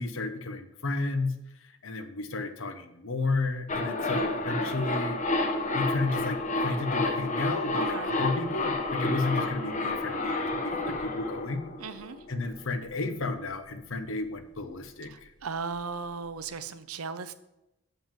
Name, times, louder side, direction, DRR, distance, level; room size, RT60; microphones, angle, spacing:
voice 1, 0.0-1.3 1.6-5.2 5.7-11.7 12.3-15.3, left 3 dB, 65° left, 0.9 m, -32 dB
sound 1, 3.7-12.5 12.8-12.9, left 2 dB, 35° left, 1.0 m, -30 dB
voice 2, 7.7-8.2 11.8-12.2 15.1-17.3, right 5 dB, 80° right, 0.7 m, -36 dB
7.4 x 5.5 x 7.4 m
head